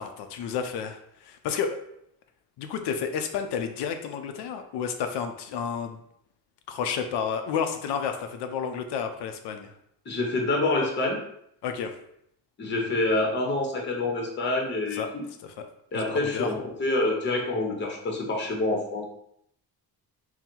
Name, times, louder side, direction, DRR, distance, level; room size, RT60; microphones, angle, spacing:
voice 1, 0.0-1.8 2.6-6.0 6.7-9.7 11.6-11.9 14.9-15.1 15.4-15.7 15.9-16.5, left 7 dB, 90° left, 7 dB, 0.6 m, -31 dB
voice 2, 10.1-11.2 12.6-15.2 15.9-19.0, left 2 dB, 30° left, 0 dB, 0.8 m, -27 dB
3.8 x 2.2 x 4.4 m, 0.72 s
cardioid pair, 135°, 40 cm